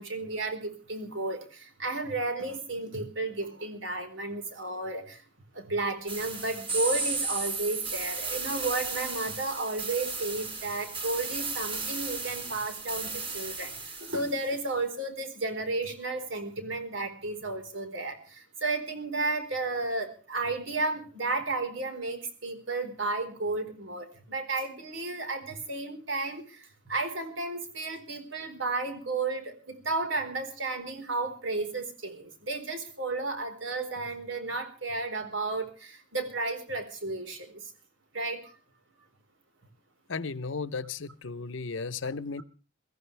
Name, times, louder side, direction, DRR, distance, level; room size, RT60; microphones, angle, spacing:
voice 1, 0.0-5.2 5.5-37.7 38.1-38.5, right 3 dB, 80° right, 4.4 m, -33 dB
sound 1, 6.1-14.5, right 4 dB, 30° right, 4.7 m, -35 dB
voice 2, 40.1-42.4, left 4 dB, 80° left, 0.8 m, -35 dB
23.5 x 15.0 x 3.4 m
head